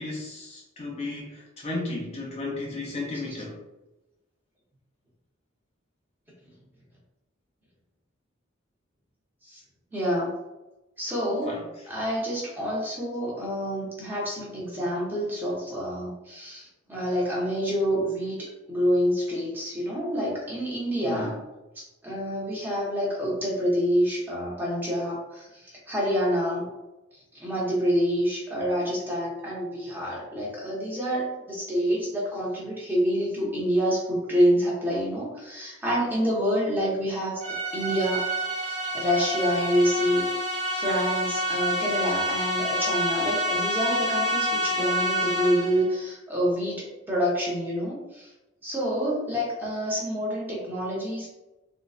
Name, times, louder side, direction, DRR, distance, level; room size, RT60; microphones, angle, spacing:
voice 1, 0.0-3.6 11.5-11.6 21.0-21.4, left 2 dB, 30° left, -4 dB, 0.5 m, -34 dB
voice 2, 9.9-10.3 11.0-11.6 11.9-21.4 21.8-26.7 27.4-38.2 38.6-40.3 40.7-48.3 48.6-51.3, equal, 10° right, -6 dB, 0.9 m, -27 dB
sound 1, 37.4-45.9, equal, 30° right, 1.3 m, -28 dB
3.7 x 2.3 x 2.4 m, 1.0 s
head